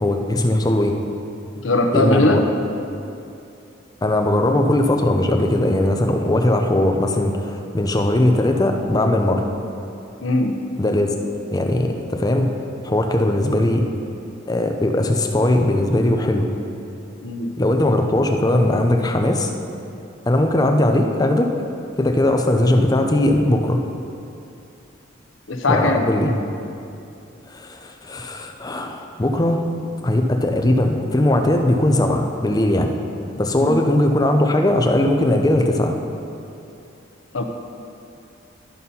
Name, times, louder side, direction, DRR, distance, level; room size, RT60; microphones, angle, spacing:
voice 1, 0.0-0.9 1.9-2.4 4.0-9.5 10.8-11.1 11.5-12.5 12.8-13.8 14.5-16.5 17.6-19.5 20.3-21.5 22.0-23.8 25.7-26.3 27.5-27.7 28.1-29.6 30.0-32.9 33.4-35.9, left 1 dB, 20° left, 3 dB, 0.6 m, -19 dB
voice 2, 1.6-2.4 10.2-10.6 17.2-17.5 25.5-26.1 33.5-33.8 37.3-37.4, left 2 dB, 80° left, 5 dB, 0.8 m, -20 dB
12.5 x 4.3 x 5.4 m, 2.6 s
head